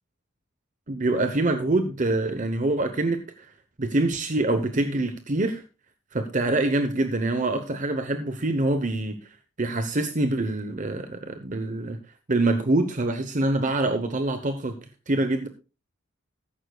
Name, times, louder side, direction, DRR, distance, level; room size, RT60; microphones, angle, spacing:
voice 1, 0.9-3.5 3.8-5.6 6.1-12.0 12.3-14.8 15.1-15.5, right 2 dB, 35° right, 0.8 m, -25 dB
14.5 x 11.5 x 2.3 m
head